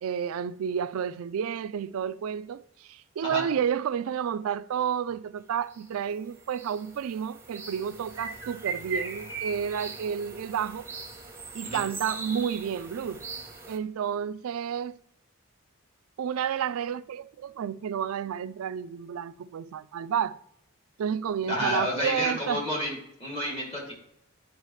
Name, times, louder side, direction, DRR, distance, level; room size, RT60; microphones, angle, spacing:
voice 1, 0.0-10.9 11.5-13.2 13.7-15.0 16.2-20.4 21.0-22.6, right 8 dB, 75° right, 0.3 m, -31 dB
sound 1, 5.7-5.9 6.1-13.8, right 4 dB, 10° right, 0.9 m, -39 dB
voice 2, 21.5-23.9, equal, 25° left, 2.4 m, -30 dB
10.5 x 4.8 x 3.1 m
head